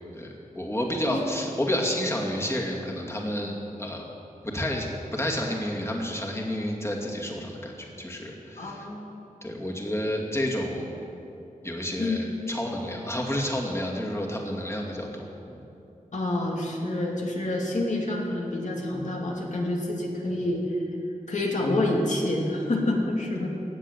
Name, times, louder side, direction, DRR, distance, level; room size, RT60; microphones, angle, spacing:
voice 1, 0.1-4.1 4.4-8.9 9.4-10.9 11.6-15.6, left 1 dB, 20° left, -1 dB, 2.5 m, -30 dB
voice 2, 8.6-9.1 12.0-12.2 16.1-20.6 21.3-23.5, left 1 dB, 60° left, -1 dB, 2.8 m, -27 dB
16.5 x 7.5 x 9.3 m, 2.8 s
wide cardioid pair, 75°, 14 cm